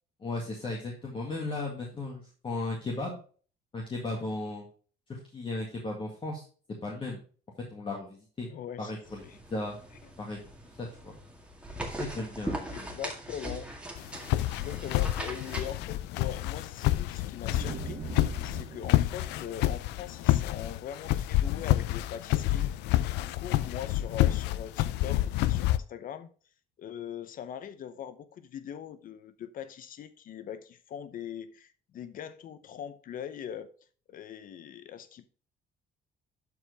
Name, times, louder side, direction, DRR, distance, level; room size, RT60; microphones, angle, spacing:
voice 1, 0.2-3.2 3.7-4.6 5.1-6.4 6.8-7.2 7.7-8.5 8.8-9.2 9.5-9.8 10.2-10.4 10.8-11.1 11.9-12.9, left 2 dB, 30° left, 2.1 m, -36 dB
voice 2, 8.5-9.0 9.2-9.4 10.0-10.1 12.7-13.7 14.6-18.0 18.4-22.7 23.2-26.3 26.8-33.7 34.1-35.3, left 9 dB, 55° left, 0.7 m, -41 dB
sound 1, 9.0-15.7, right 1 dB, 5° right, 2.0 m, -40 dB
sound 2, 14.0-25.8, left 15 dB, 90° left, 0.5 m, -28 dB
sound 3, 17.5-21.1, right 7 dB, 40° right, 0.7 m, -43 dB
12.0 x 4.8 x 3.4 m
cardioid pair, 110°, 17 cm